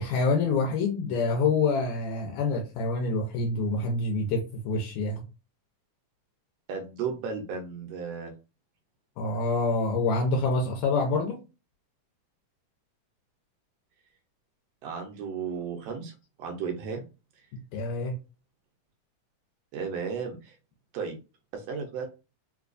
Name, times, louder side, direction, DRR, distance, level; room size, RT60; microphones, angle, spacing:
voice 1, 0.0-5.2 9.2-11.4 17.5-18.2, left 3 dB, 80° left, 1 dB, 1.9 m, -27 dB
voice 2, 6.7-8.3 14.8-17.0 19.7-20.6 20.9-21.2 21.5-22.1, right 6 dB, 75° right, 3 dB, 1.6 m, -34 dB
4.5 x 2.2 x 2.5 m, 0.30 s
omnidirectional pair, 3.3 m